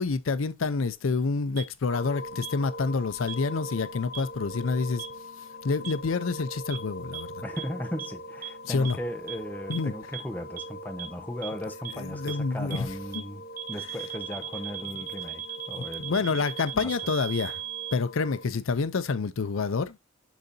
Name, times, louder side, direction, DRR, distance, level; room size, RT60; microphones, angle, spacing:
voice 1, 0.0-5.0 5.6-7.4 8.6-9.0 9.7-9.9 11.9-12.9 13.1-13.2 16.0-17.6 17.9-20.0, left 4 dB, 75° left, 0.5 m, -28 dB
sound 1, 1.6-1.7 2.4-2.5 3.3-3.4 4.1-4.2 5.0-5.1 5.8-5.9 6.7-6.8 7.1-7.2 7.6-7.7 8.0-8.1 8.4-8.5 8.8-8.9 9.3-9.4 9.7-9.8 10.1-10.2 10.6-10.7 11.0-11.1 11.4-11.5 11.8-11.9 12.3-12.4 12.7-12.8 13.1-13.2 13.6-18.0, right 13 dB, 45° right, 1.0 m, -36 dB
sound 2, 1.9-18.5, left 1 dB, 45° left, 0.9 m, -42 dB
voice 2, 7.4-13.4 13.7-16.4 16.7-16.9, equal, 10° left, 0.7 m, -37 dB
10.0 x 4.0 x 2.6 m
head